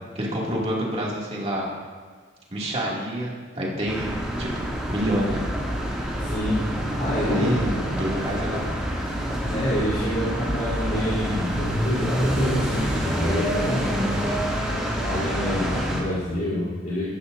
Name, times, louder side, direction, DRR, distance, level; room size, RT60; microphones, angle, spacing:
voice 1, 0.1-1.7 2.5-4.5 4.9-5.4 7.2-8.7, right 1 dB, 35° right, -5 dB, 2.7 m, -27 dB
sound 1, 3.9-16.0, equal, 5° right, 2.5 m, -27 dB
voice 2, 6.2-6.6 7.0-7.5 7.8-7.9 9.5-14.1 15.0-17.0, equal, 45° left, -10 dB, 3.6 m, -27 dB
15.0 x 13.5 x 2.7 m, 1.5 s
head